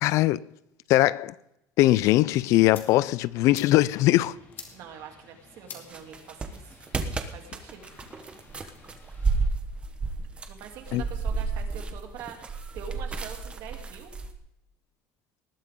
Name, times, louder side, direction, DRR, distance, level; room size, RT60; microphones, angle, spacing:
voice 1, 0.0-0.4 0.9-1.3 1.8-4.4 10.9-11.0, left 17 dB, 55° left, 0.4 m, -21 dB
sound 1, 2.0-9.5, left 5 dB, 35° left, 2.4 m, -50 dB
voice 2, 4.7-6.8 7.2-7.9 10.5-14.1, right 8 dB, 60° right, 3.0 m, -44 dB
sound 2, 5.9-14.3, right 4 dB, 20° right, 1.1 m, -31 dB
19.5 x 12.5 x 3.8 m
cardioid pair, 165°, 6 cm